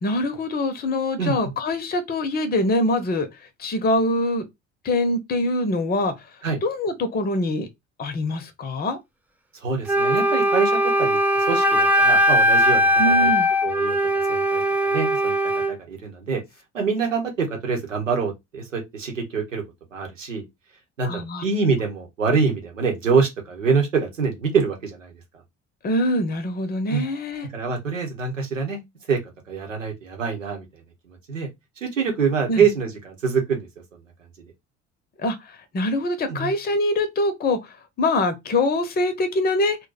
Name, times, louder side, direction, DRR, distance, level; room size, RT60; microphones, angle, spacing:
voice 1, 0.0-3.3 3.6-4.4 4.8-6.1 6.6-7.7 8.0-9.0 13.0-13.5 21.0-21.4 25.8-27.5 32.5-32.6 35.2-37.6 38.0-39.8, left 1 dB, 25° left, 0.7 m, -24 dB
voice 2, 9.6-10.7 11.0-13.3 13.6-14.0 14.3-15.3 15.7-16.4 16.7-19.6 19.9-20.4 21.0-25.1 26.9-27.0 27.5-28.8 29.1-29.2 29.5-31.5 31.8-34.0 36.3-36.5, right 5 dB, 85° right, 0.9 m, -25 dB
Wind instrument woodwind instrument, 9.9-15.8, equal, 5° right, 0.4 m, -20 dB
2.5 x 2.2 x 3.9 m
figure-of-eight pair, 55°, 37 cm